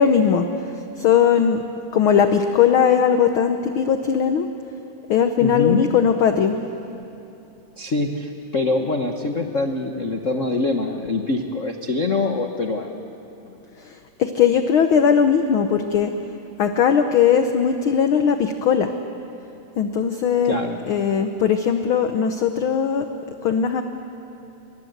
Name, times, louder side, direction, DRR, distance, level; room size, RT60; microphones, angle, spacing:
voice 1, 0.0-1.6 1.9-4.5 5.1-6.6 13.8-13.9 14.2-16.1 16.6-18.9 19.8-20.5 20.9-23.1 23.4-23.8, left 7 dB, 65° left, 7 dB, 1.3 m, -19 dB
voice 2, 5.4-5.9 7.8-12.9 20.4-20.8, left 3 dB, 90° left, 4 dB, 0.6 m, -24 dB
28.0 x 24.0 x 8.0 m, 2.9 s
omnidirectional pair, 3.3 m